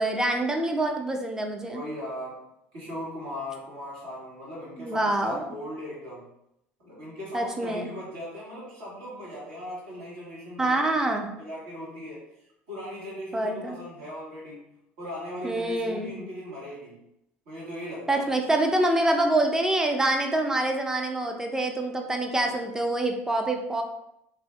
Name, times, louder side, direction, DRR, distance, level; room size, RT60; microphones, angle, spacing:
voice 1, 0.0-1.8 4.8-5.5 7.3-7.9 10.6-11.3 13.3-13.8 15.4-16.2 18.1-23.8, right 1 dB, 10° right, 3 dB, 0.4 m, -26 dB
voice 2, 1.7-2.4 2.7-6.3 6.8-11.1 11.4-12.2 12.7-14.7 15.0-17.0 17.5-18.3 22.4-22.5, equal, 65° right, -7 dB, 1.1 m, -38 dB
2.4 x 2.3 x 2.4 m, 0.81 s
figure-of-eight pair, 70°, 7 cm